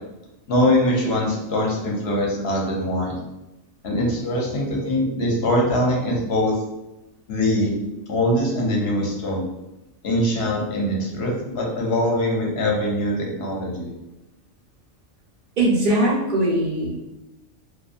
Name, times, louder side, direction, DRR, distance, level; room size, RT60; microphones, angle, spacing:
voice 1, 0.5-3.2 3.8-6.5 7.3-7.7 8.1-9.4 10.0-13.9, left 1 dB, 60° left, -1 dB, 0.8 m, -22 dB
voice 2, 15.6-17.0, right 1 dB, 50° right, -6 dB, 0.9 m, -20 dB
2.6 x 2.3 x 2.4 m, 0.95 s
omnidirectional pair, 1.3 m